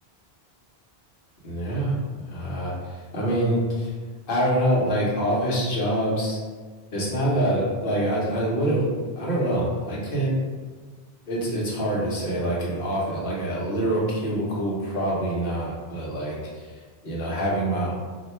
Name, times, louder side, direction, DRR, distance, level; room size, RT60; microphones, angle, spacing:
voice 1, 1.4-1.9 2.3-4.0 4.3-6.4 6.9-8.9 9.2-10.3 11.3-17.9, right 1 dB, 60° left, -5 dB, 1.1 m, -25 dB
2.8 x 2.2 x 4.1 m, 1.4 s
omnidirectional pair, 1.1 m